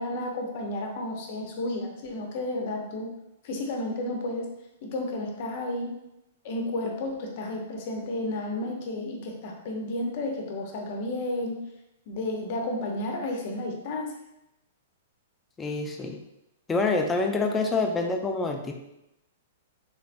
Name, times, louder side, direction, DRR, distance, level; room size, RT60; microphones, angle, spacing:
voice 1, 0.0-3.1 3.4-4.5 4.8-6.0 6.4-11.6 12.1-14.1, left 1 dB, 55° left, 1 dB, 0.7 m, -32 dB
voice 2, 15.6-16.2 16.7-18.7, left 3 dB, 15° left, 3 dB, 0.4 m, -26 dB
3.3 x 3.1 x 2.5 m, 0.87 s
hypercardioid pair, 135°, 0 cm